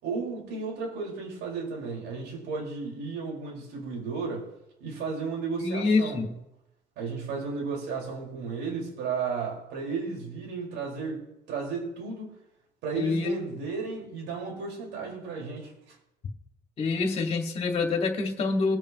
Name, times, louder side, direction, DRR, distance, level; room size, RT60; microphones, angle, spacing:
voice 1, 0.0-4.5 4.8-6.2 7.0-12.3 12.8-15.9, right 4 dB, 80° right, -2 dB, 5.5 m, -34 dB
voice 2, 5.6-6.4 12.9-13.3 16.8-18.8, left 4 dB, 35° left, 2 dB, 2.2 m, -26 dB
24.0 x 8.8 x 3.2 m, 0.85 s
cardioid pair, 180°, 19 cm